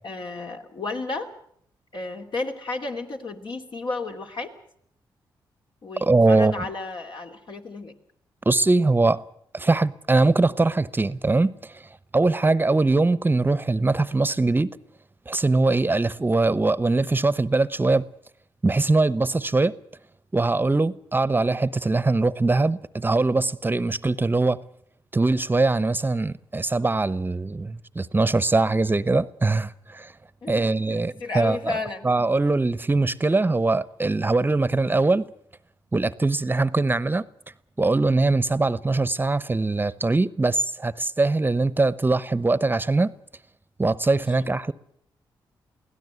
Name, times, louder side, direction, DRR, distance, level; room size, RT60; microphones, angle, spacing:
voice 1, 0.0-1.3 1.9-4.5 5.8-7.9 30.4-32.1 44.4-44.5, left 3 dB, 65° left, 3.0 m, -33 dB
voice 2, 6.0-6.6 8.5-9.2 9.5-11.9 12.1-14.8 15.3-18.0 18.6-19.8 20.3-24.6 25.1-30.1 30.5-31.8 32.0-35.3 35.9-37.3 37.8-43.1 43.8-44.7, right 3 dB, 25° right, 0.9 m, -22 dB
22.5 x 16.5 x 8.2 m
supercardioid pair, 55°, 9 cm